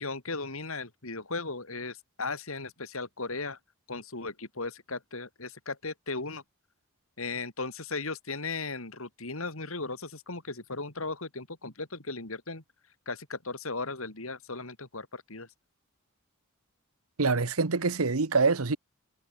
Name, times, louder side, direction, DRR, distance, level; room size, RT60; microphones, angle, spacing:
voice 1, 0.0-3.6 3.9-6.4 7.2-12.6 13.1-15.5, left 3 dB, 70° left, 3.7 m, -36 dB
voice 2, 17.2-18.8, right 4 dB, 80° right, 1.2 m, -25 dB
head